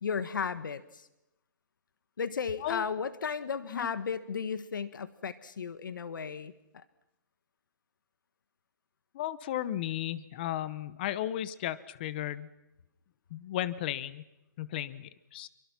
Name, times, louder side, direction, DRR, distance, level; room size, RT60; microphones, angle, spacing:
voice 1, 0.0-1.1 2.2-6.8, left 6 dB, 75° left, 14 dB, 1.5 m, -35 dB
voice 2, 9.1-12.5 13.3-14.2 14.6-15.5, left 12 dB, 30° left, 17 dB, 0.9 m, -35 dB
28.0 x 24.0 x 5.9 m, 0.94 s
hypercardioid pair, 170°, 11 cm